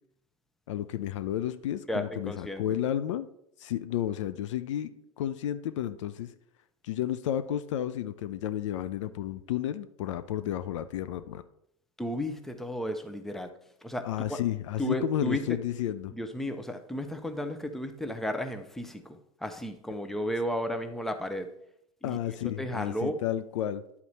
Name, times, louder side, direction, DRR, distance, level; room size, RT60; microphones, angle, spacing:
voice 1, 0.7-3.3 3.6-4.9 5.2-6.3 6.8-11.4 14.0-16.1 22.0-23.8, left 11 dB, 55° left, 12 dB, 0.5 m, -32 dB
voice 2, 1.9-2.6 12.0-13.5 13.8-14.4 14.8-15.6 16.1-21.5 22.0-22.2 22.4-23.2, equal, ahead, 7 dB, 0.7 m, -33 dB
10.5 x 4.3 x 4.1 m, 0.75 s
figure-of-eight pair, 90°, 18 cm